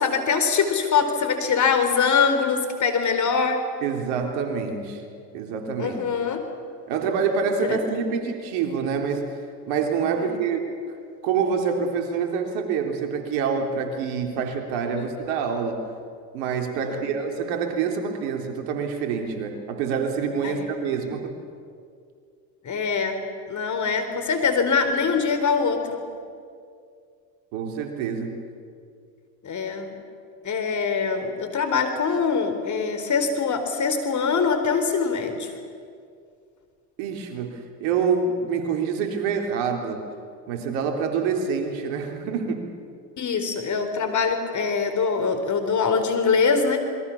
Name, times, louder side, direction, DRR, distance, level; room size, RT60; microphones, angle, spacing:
voice 1, 0.0-3.6 5.8-6.5 7.6-7.8 10.2-10.4 16.8-17.1 20.4-20.7 22.6-26.0 29.4-29.9 30.4-35.5 43.2-46.8, left 5 dB, 35° left, 7 dB, 4.2 m, -23 dB
voice 2, 3.8-5.0 5.3-6.0 6.9-9.2 9.7-10.6 10.9-11.0 11.2-15.9 16.3-21.3 27.5-28.4 37.0-40.1 40.5-42.7, right 6 dB, 65° right, 4 dB, 3.8 m, -26 dB
27.5 x 22.5 x 7.2 m, 2.3 s
hypercardioid pair, 80°, 49 cm